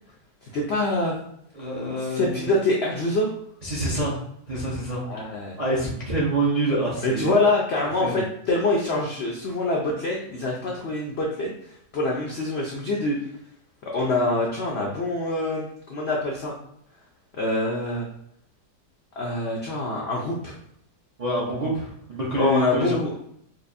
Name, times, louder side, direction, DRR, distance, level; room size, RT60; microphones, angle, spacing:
voice 1, 0.5-1.2 2.0-3.3 5.0-5.6 7.0-11.5 11.9-13.2 13.8-16.5 17.4-18.1 19.2-20.5 22.4-23.1, left 2 dB, 75° left, -2 dB, 0.6 m, -25 dB
voice 2, 1.5-2.5 3.6-4.2 4.5-5.0 5.6-7.3 8.0-8.2 21.2-23.0, right 1 dB, 50° right, -6 dB, 0.4 m, -26 dB
4.6 x 2.4 x 2.6 m, 0.72 s
omnidirectional pair, 1.7 m